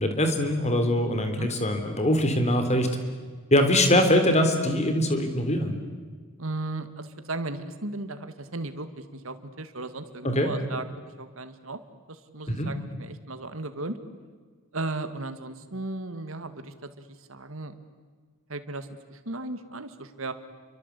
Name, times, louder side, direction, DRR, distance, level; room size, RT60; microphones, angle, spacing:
voice 1, 0.0-2.9 3.5-5.7 10.2-10.5 12.5-12.7, left 1 dB, 30° left, 7 dB, 3.6 m, -23 dB
voice 2, 6.4-10.9 11.2-11.8 12.1-14.0 14.7-17.7 18.5-20.3, right 2 dB, 70° right, 10 dB, 2.0 m, -36 dB
30.0 x 23.5 x 8.4 m, 1.5 s
head